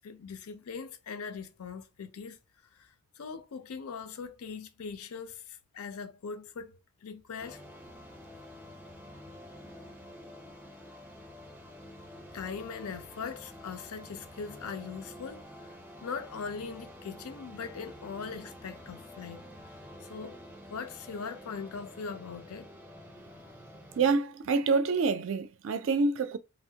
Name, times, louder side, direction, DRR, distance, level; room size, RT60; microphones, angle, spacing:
voice 1, 0.0-2.4 2.8-7.6 12.3-19.4 20.0-20.4 20.7-22.7, left 5 dB, 80° left, 0.5 m, -41 dB
sound 1, 7.4-24.2, equal, 10° right, 0.5 m, -49 dB
voice 2, 24.0-26.4, right 4 dB, 60° right, 0.4 m, -27 dB
3.1 x 2.1 x 2.7 m
head